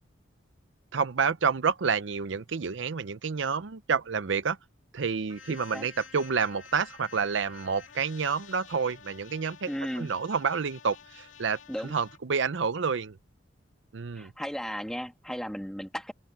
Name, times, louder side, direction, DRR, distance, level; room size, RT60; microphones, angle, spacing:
voice 1, 0.9-4.6 4.9-9.7 10.0-11.6 11.9-13.2 13.9-14.3, right 5 dB, 70° right, 0.6 m, -29 dB
sound 1, 5.3-12.2, left 7 dB, 80° left, 2.9 m, -51 dB
voice 2, 5.5-5.9 9.7-10.1 11.7-11.9 14.1-16.1, equal, 5° left, 2.1 m, -35 dB
open air
head